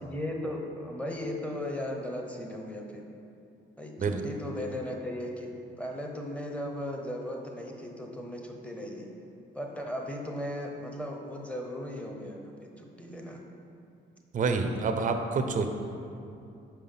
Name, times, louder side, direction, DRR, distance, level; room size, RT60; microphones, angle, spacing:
voice 1, 0.0-3.0 3.8-5.5 5.8-9.1 9.5-13.4, left 1 dB, 5° left, 1 dB, 0.9 m, -37 dB
voice 2, 14.3-15.7, right 4 dB, 40° right, 6 dB, 0.5 m, -27 dB
5.6 x 4.7 x 5.5 m, 2.7 s
cardioid pair, 90°, 20 cm